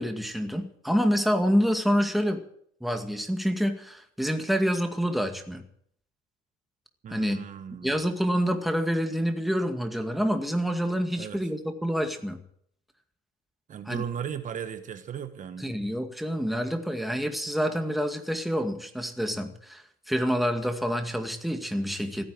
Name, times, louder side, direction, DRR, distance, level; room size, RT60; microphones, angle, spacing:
voice 1, 0.0-2.4 2.8-5.6 7.1-7.4 7.8-12.4 13.9-14.0 15.6-22.2, equal, ahead, 5 dB, 2.1 m, -27 dB
voice 2, 7.0-8.0 11.2-11.4 13.7-15.7, right 8 dB, 50° right, 9 dB, 1.4 m, -36 dB
16.0 x 10.0 x 8.9 m, 0.67 s
cardioid pair, 110°, 17 cm